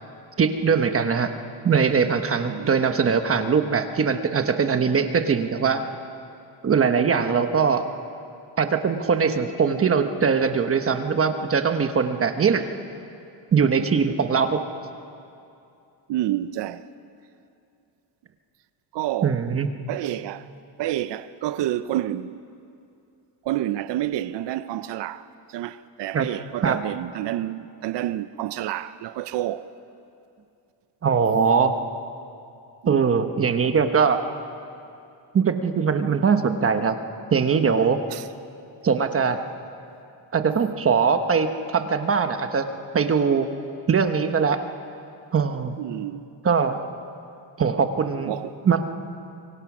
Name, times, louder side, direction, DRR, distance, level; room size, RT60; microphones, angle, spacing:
voice 1, 0.4-1.3 1.6-5.8 6.6-7.8 8.6-12.6 13.5-14.6 19.2-19.7 26.1-26.3 26.6-26.8 31.0-31.7 32.9-34.2 35.3-37.0 37.3-38.0 38.8-39.4 40.3-42.7 42.9-43.5 43.9-44.6 45.3-45.8 46.4-46.8 47.6-48.3 48.6-48.8, right 6 dB, 30° right, 1.0 m, -21 dB
voice 2, 16.1-16.9 18.9-19.5 19.9-20.5 20.8-22.4 23.4-29.7 32.8-33.1 38.1-38.3 45.8-46.3 48.3-48.6, right 13 dB, 70° right, 0.7 m, -29 dB
25.5 x 23.5 x 6.1 m
cardioid pair, 165°, 45 cm